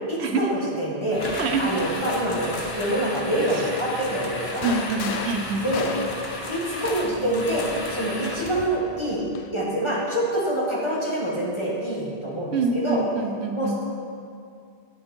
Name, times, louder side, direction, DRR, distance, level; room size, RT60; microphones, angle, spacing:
voice 1, 0.1-1.2 1.6-4.6 5.6-5.9 6.5-13.0 13.5-13.8, right 1 dB, 25° left, -5 dB, 1.6 m, -26 dB
sound 1, 1.1-8.7, left 2 dB, 70° left, 1.3 m, -34 dB
sound 2, 4.4-7.3 8.5-9.5, left 7 dB, 90° left, 0.9 m, -35 dB
voice 2, 4.6-5.6 12.5-13.8, right 4 dB, 90° right, 5 dB, 1.1 m, -25 dB
8.9 x 8.7 x 4.5 m, 2.3 s
omnidirectional pair, 1.1 m